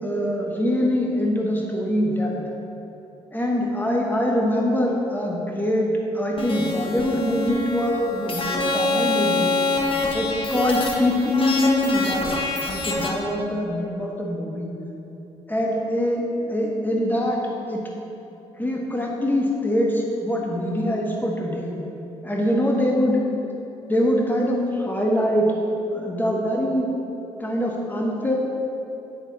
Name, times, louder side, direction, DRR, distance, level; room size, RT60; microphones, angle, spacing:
voice 1, 0.0-2.3 3.3-5.9 6.1-9.5 10.1-12.4 12.7-14.7 15.5-16.2 16.5-17.4 17.7-17.8 18.6-21.7 22.2-23.2 23.9-25.5 25.9-26.9 27.4-28.3, left 1 dB, 15° left, -2 dB, 1.3 m, -23 dB
sound 1, 6.4-13.1, left 2 dB, 40° left, 1.0 m, -25 dB
8.3 x 3.4 x 4.2 m, 2.9 s
supercardioid pair, 55°, 14 cm